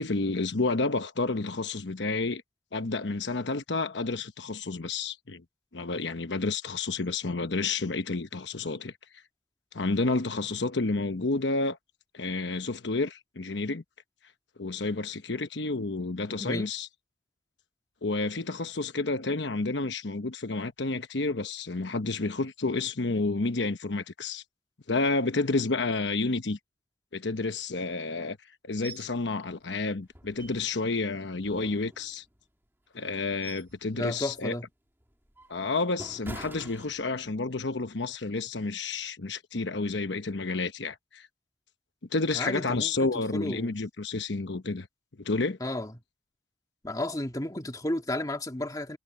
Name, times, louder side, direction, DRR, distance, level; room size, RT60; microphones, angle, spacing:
voice 1, 0.0-2.4 2.7-5.4 5.7-8.9 9.7-11.8 12.1-13.8 14.6-16.9 18.0-24.4 24.9-26.6 27.1-28.4 28.6-32.2 32.9-34.5 35.5-41.3 42.1-44.9 45.2-45.6, left 3 dB, 80° left, 1.1 m, -30 dB
sound 1, 28.8-29.1 29.5-29.6 30.1-30.9 31.4-32.4 33.0-33.8 34.2-34.5 35.0-37.5 37.8-38.0, right 1 dB, 15° right, 3.0 m, -46 dB
voice 2, 33.9-34.7 42.3-43.8 45.6-46.0 46.8-49.0, left 1 dB, 20° left, 2.3 m, -33 dB
head